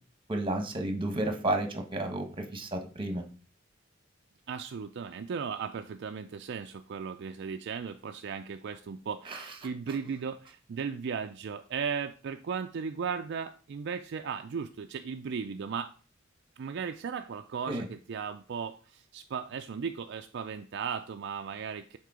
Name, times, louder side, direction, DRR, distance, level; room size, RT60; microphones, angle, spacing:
voice 1, 0.3-3.2 9.3-9.5 17.7-17.9, right 1 dB, 25° right, 5 dB, 1.2 m, -32 dB
voice 2, 4.5-15.9 16.6-22.0, right 6 dB, 60° right, 7 dB, 0.4 m, -36 dB
6.6 x 4.3 x 4.9 m, 0.38 s
head